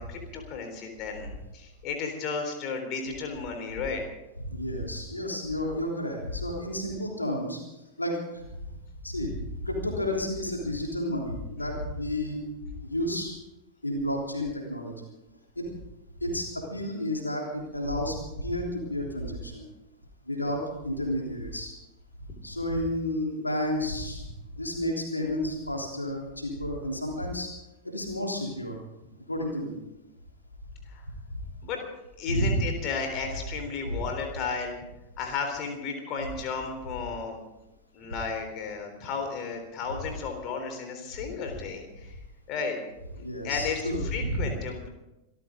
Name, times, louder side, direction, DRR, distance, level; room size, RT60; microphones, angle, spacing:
voice 1, 0.0-4.0 22.3-22.4 30.9-31.1 31.6-31.8 32.2-34.8 35.2-37.4 37.9-42.1 42.5-42.8 43.1-44.9, left 5 dB, 40° left, 4 dB, 3.6 m, -34 dB
voice 2, 4.4-7.6 8.0-8.4 9.0-9.4 9.6-12.4 12.9-13.4 13.8-15.1 15.5-15.6 16.2-19.7 20.3-21.7 22.4-24.3 24.5-27.5 27.8-28.8 29.3-29.8 32.3-32.8 33.8-33.9 43.1-44.5, equal, 85° left, 0 dB, 3.3 m, -31 dB
26.0 x 14.5 x 3.8 m, 0.93 s
figure-of-eight pair, 90°, 0 cm